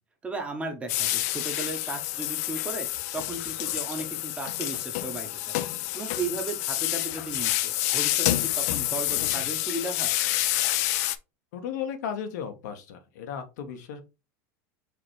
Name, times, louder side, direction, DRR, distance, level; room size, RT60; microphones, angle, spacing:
voice 1, 0.2-2.9 3.1-5.5 5.9-10.1, right 3 dB, 15° right, 0.9 m, -35 dB
sound 1, 0.9-11.2, left 15 dB, 65° left, 0.4 m, -28 dB
voice 2, 11.5-14.0, left 8 dB, 80° left, 1.1 m, -35 dB
4.9 x 3.3 x 3.1 m
supercardioid pair, 160°, 9 cm